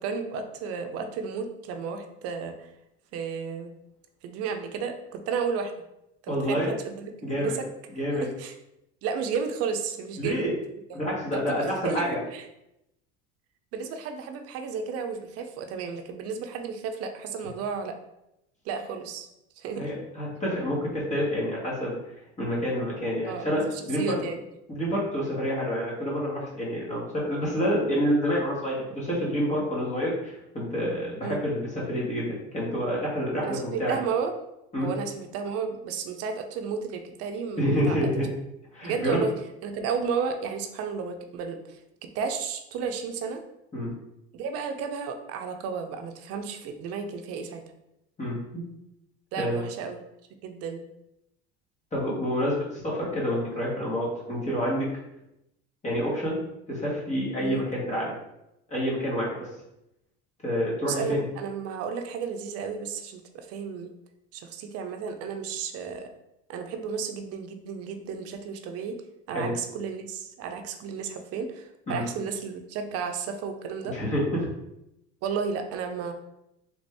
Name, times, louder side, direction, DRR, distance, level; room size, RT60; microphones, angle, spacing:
voice 1, 0.0-2.7 3.1-3.7 4.2-5.7 6.2-7.7 8.1-8.5 9.0-10.4 10.9-11.0 11.3-12.1 12.3-12.4 13.7-18.0 18.6-19.3 19.6-19.9 23.3-24.4 31.2-31.4 33.4-34.3 34.8-38.1 38.8-39.3 39.6-41.8 42.1-43.4 44.3-47.6 49.3-50.0 50.3-50.8 57.4-57.6 60.8-63.9 64.3-66.1 66.5-69.0 69.3-74.0 75.2-76.1, right 6 dB, 55° right, 6 dB, 0.6 m, -33 dB
voice 2, 6.3-6.7 7.2-7.6 8.0-8.3 10.2-10.5 10.9-12.2 19.8-21.9 22.4-23.6 23.9-24.3 24.7-34.0 34.7-34.9 37.6-38.3 38.7-39.2 43.7-43.9 48.2-48.6 49.4-49.6 51.9-54.9 55.8-56.4 56.7-58.1 58.7-59.5 60.4-61.2 69.3-69.5 71.9-72.0 73.9-74.5, equal, 25° left, -4 dB, 1.3 m, -28 dB
3.4 x 2.5 x 3.3 m, 0.86 s
supercardioid pair, 105°, 29 cm